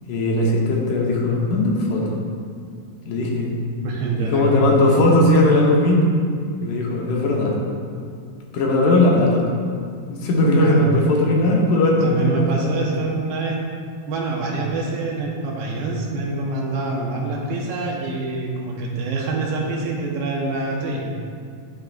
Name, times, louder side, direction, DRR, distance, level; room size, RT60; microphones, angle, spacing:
voice 1, 0.1-2.1 3.1-3.5 4.2-6.0 6.6-7.6 8.5-9.4 10.1-12.9, left 1 dB, 75° left, -2 dB, 2.6 m, -18 dB
voice 2, 3.8-4.8 10.6-10.8 12.0-13.6 14.1-21.1, right 3 dB, 85° right, -2 dB, 2.9 m, -25 dB
12.0 x 7.4 x 2.5 m, 2.2 s
omnidirectional pair, 3.8 m